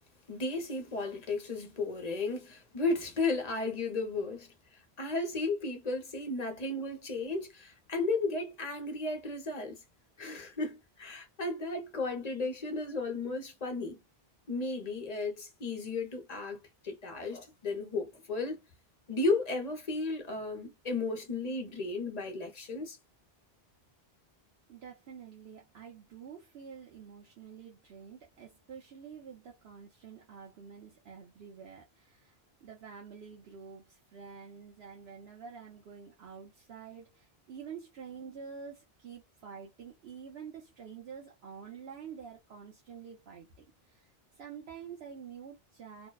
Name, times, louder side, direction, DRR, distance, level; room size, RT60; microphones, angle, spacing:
voice 1, 0.3-4.5 5.0-9.8 10.2-14.0 14.5-18.6 19.1-23.0, left 3 dB, 45° left, 0.8 m, -34 dB
voice 2, 24.7-32.4 32.6-44.1 44.4-46.1, right 6 dB, 75° right, 1.0 m, -48 dB
2.7 x 2.1 x 2.2 m
omnidirectional pair, 1.1 m